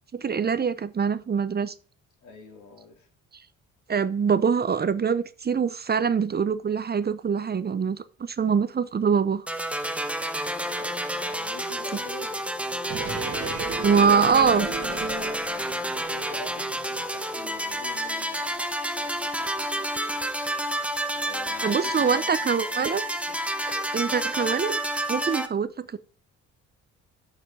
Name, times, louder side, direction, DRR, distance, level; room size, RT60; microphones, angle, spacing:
voice 1, 0.1-1.7 3.9-9.5 13.8-14.7 21.6-23.0 23.9-24.8 25.1-26.0, right 6 dB, 30° right, 0.8 m, -24 dB
voice 2, 2.2-3.1 10.6-12.6 13.1-19.9 21.1-23.5 23.7-24.3, left 4 dB, 75° left, 3.4 m, -44 dB
sound 1, 9.5-25.5, right 1 dB, 5° right, 1.0 m, -30 dB
sound 2, 12.9-16.0 16.3-16.4, right 6 dB, 50° right, 1.9 m, -35 dB
6.8 x 6.0 x 6.9 m
cardioid pair, 90°, 30 cm